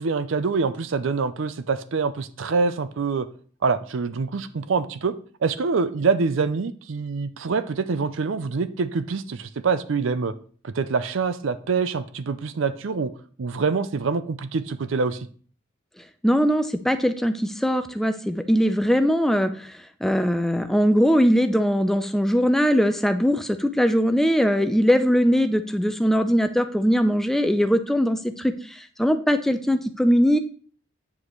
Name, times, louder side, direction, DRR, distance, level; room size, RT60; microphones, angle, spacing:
voice 1, 0.0-3.3 3.6-5.1 5.4-10.3 10.6-13.1 13.4-15.3, right 4 dB, 70° right, 13 dB, 0.5 m, -25 dB
voice 2, 16.2-19.7 20.0-30.4, equal, ahead, 8 dB, 0.5 m, -21 dB
8.3 x 7.5 x 3.1 m, 0.44 s
head